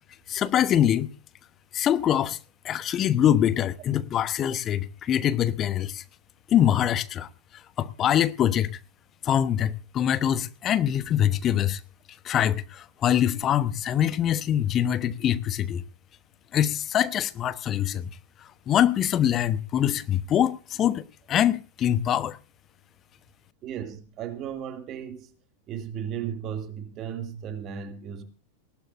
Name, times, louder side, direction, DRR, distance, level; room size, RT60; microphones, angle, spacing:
voice 1, 0.3-1.1 1.7-2.4 2.6-6.0 6.5-7.3 7.8-8.7 9.2-11.8 12.2-15.8 16.5-18.1 18.7-22.4, left 10 dB, 30° left, 1.1 m, -24 dB
voice 2, 23.6-25.3 25.7-28.2, right 8 dB, 35° right, 2.6 m, -35 dB
19.5 x 19.0 x 2.7 m
figure-of-eight pair, 90°, 0 cm